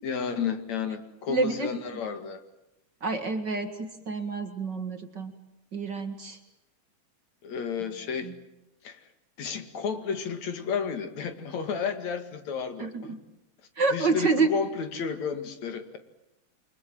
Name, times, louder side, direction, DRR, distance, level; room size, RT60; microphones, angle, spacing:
voice 1, 0.0-2.4 7.4-8.3 8.8-9.0 9.4-13.2 13.9-16.0, left 6 dB, 70° left, 8 dB, 3.4 m, -32 dB
voice 2, 1.3-1.7 3.0-5.3 5.7-6.4 8.2-8.3 12.8-13.2 13.8-14.5, right 4 dB, 40° right, 7 dB, 2.3 m, -28 dB
29.5 x 24.5 x 7.7 m, 0.90 s
omnidirectional pair, 3.3 m